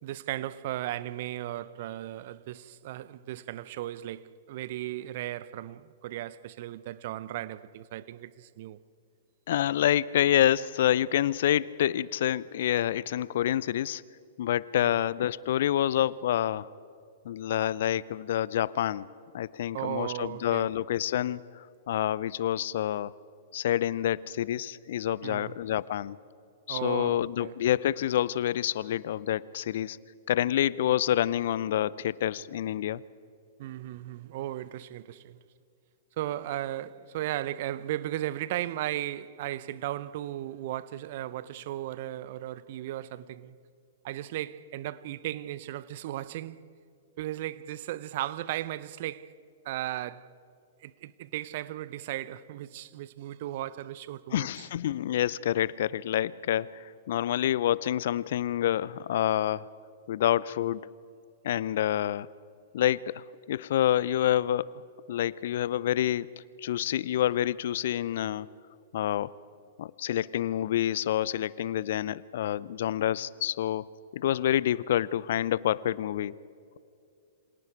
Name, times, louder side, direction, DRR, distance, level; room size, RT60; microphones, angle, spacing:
voice 1, 0.0-8.8 14.8-15.0 19.7-20.7 25.2-25.5 26.7-27.5 33.6-35.4 36.2-43.6 44.0-46.6 47.2-49.3 49.6-50.3 50.8-54.7, right 14 dB, 50° right, 0.8 m, -36 dB
voice 2, 9.5-14.0 14.4-16.7 17.3-19.1 19.3-23.1 23.5-26.2 26.7-30.0 30.3-33.0 54.3-59.7 60.1-60.8 61.4-62.3 62.7-64.8 65.1-68.5 68.9-69.3 69.8-73.9 74.1-76.4, left 11 dB, 60° left, 0.6 m, -27 dB
28.5 x 26.0 x 4.7 m
figure-of-eight pair, 110°, 0 cm